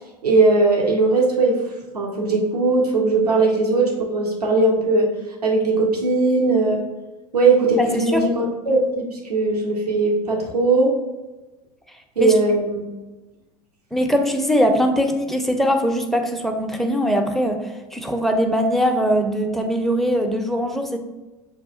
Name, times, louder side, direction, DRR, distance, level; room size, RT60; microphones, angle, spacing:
voice 1, 0.2-1.6 1.9-5.1 5.4-6.8 7.3-10.9 12.2-12.8, right 3 dB, 90° right, -1 dB, 0.7 m, -19 dB
voice 2, 7.8-8.3 12.2-12.3 13.9-21.0, equal, ahead, 4 dB, 0.5 m, -21 dB
6.9 x 2.3 x 2.4 m, 1.1 s
hypercardioid pair, 80°, 19 cm